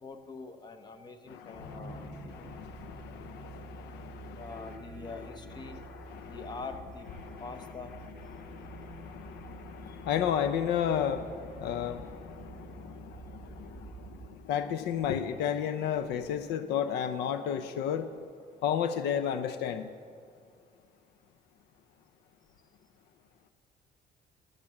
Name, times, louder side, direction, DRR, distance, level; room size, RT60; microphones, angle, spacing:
voice 1, 0.0-2.5 4.4-5.8 6.3-7.1 7.4-7.9, left 4 dB, 25° left, 7 dB, 0.9 m, -44 dB
voice 2, 1.3-5.1 5.7-6.5 7.2-7.5 8.3-18.2 18.6-19.9, left 8 dB, 80° left, 11 dB, 0.6 m, -33 dB
sound 1, 1.5-14.3, right 2 dB, 5° left, 2.0 m, -47 dB
13.5 x 6.7 x 7.2 m, 2.2 s
cardioid pair, 110°, 17 cm